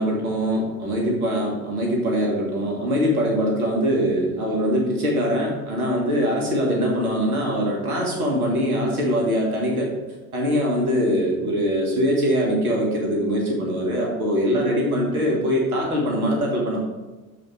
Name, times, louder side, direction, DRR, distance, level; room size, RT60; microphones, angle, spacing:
voice 1, 0.0-9.9 10.3-16.8, equal, 80° right, -2 dB, 1.9 m, -22 dB
7.1 x 4.8 x 4.9 m, 1.2 s
figure-of-eight pair, 75°, 43 cm